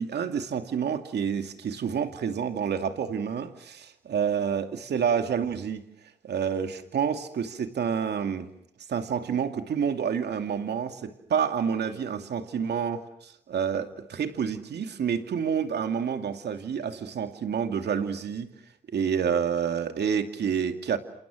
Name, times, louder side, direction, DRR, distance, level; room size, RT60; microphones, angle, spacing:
voice 1, 0.0-5.8 6.2-8.5 8.9-18.5 18.9-21.0, right 7 dB, 70° right, 2.6 m, -28 dB
30.0 x 27.5 x 6.4 m
supercardioid pair, 45°, 18 cm